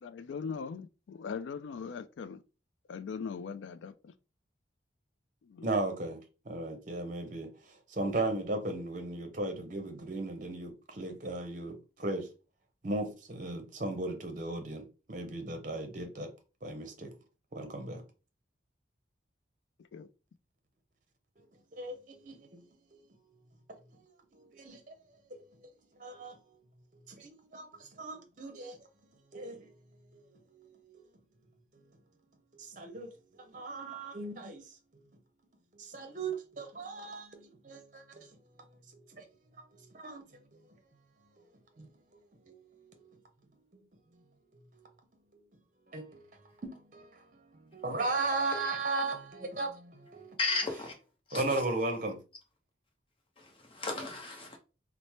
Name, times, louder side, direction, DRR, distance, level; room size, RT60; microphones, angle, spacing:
voice 1, 0.0-2.4 2.9-4.1 5.4-5.7 19.9-20.1, left 5 dB, 80° left, 0.3 m, -40 dB
voice 2, 5.6-6.2 6.5-7.5 7.9-12.3 12.8-16.3 16.6-17.1 17.5-18.0 21.8-22.6 24.3-25.0 25.3-25.7 26.0-26.4 27.1-28.8 29.3-29.7 30.1-30.2 30.5-31.0 32.5-33.1 33.5-34.6 35.7-38.3 39.1-39.2 39.9-40.2 41.8-42.0 42.5-43.0 43.7-43.8 45.9-46.2 46.6-50.4 51.3-52.2, right 2 dB, 45° right, 0.7 m, -36 dB
voice 3, 50.4-50.9 51.3-51.6 53.4-54.6, left 3 dB, 30° left, 0.8 m, -34 dB
3.1 x 2.1 x 4.2 m
head